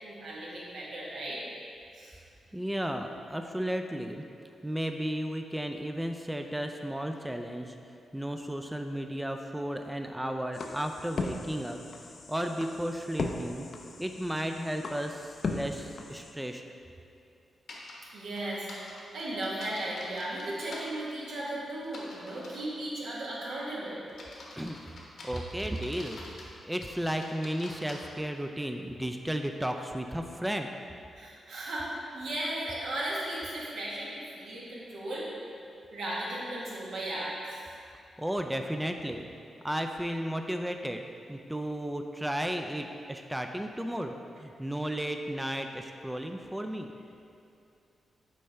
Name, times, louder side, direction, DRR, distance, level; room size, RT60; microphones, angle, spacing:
voice 1, 0.0-1.4 1.9-2.2 18.1-18.7 18.9-24.1 31.1-35.3 35.9-37.6, right 1 dB, 85° right, -6 dB, 1.4 m, -36 dB
voice 2, 2.5-4.2 4.6-7.8 8.1-13.7 14.0-16.6 24.6-24.8 25.2-26.2 26.7-30.7 38.2-39.2 39.6-46.9, equal, 5° right, 5 dB, 0.3 m, -34 dB
sound 1, 10.5-16.3, left 3 dB, 55° left, 0.4 m, -38 dB
sound 2, 17.7-17.9 18.4-20.8 21.8-22.7 23.2-23.5 24.1-26.5 26.8-28.0, left 2 dB, 70° left, 1.1 m, -47 dB
6.5 x 4.2 x 3.4 m, 2.5 s
cardioid pair, 75°, 0 cm